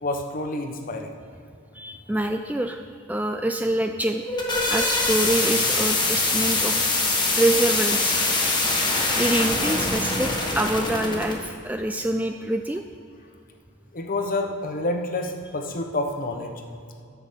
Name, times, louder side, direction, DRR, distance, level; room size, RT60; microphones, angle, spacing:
voice 1, 0.0-1.1 13.9-16.5, left 2 dB, 40° left, 4 dB, 1.0 m, -28 dB
voice 2, 1.7-2.8 3.1-4.2 4.7-6.9 7.3-12.8, right 1 dB, 5° right, 5 dB, 0.3 m, -26 dB
sound 1, 4.1-11.4, left 2 dB, 20° left, 1.4 m, -23 dB
12.0 x 6.0 x 7.3 m, 2.5 s
head